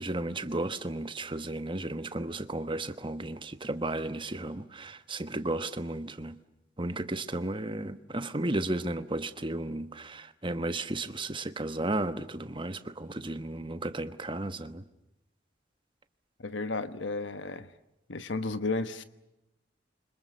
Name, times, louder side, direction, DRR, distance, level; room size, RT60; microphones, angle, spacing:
voice 1, 0.0-6.4 6.8-14.9, right 2 dB, 25° right, 1.2 m, -34 dB
voice 2, 16.4-17.7 18.1-19.0, left 3 dB, 85° left, 1.3 m, -33 dB
29.0 x 25.5 x 6.8 m
head